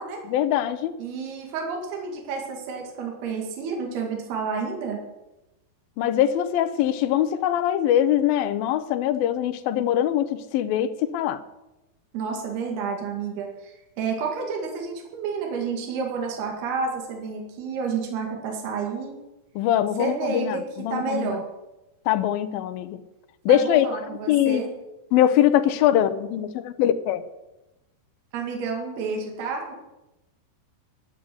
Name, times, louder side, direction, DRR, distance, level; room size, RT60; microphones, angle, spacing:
voice 1, 0.3-1.0 6.0-11.4 19.6-21.3 22.1-23.0 23.5-23.9 24.3-24.6 25.1-27.2, left 11 dB, 75° left, 11 dB, 2.2 m, -22 dB
voice 2, 1.0-5.0 12.1-19.2 20.0-21.5 23.5-24.7 28.3-29.8, right 5 dB, 70° right, 1 dB, 4.1 m, -30 dB
13.0 x 9.9 x 7.8 m, 0.98 s
omnidirectional pair, 4.9 m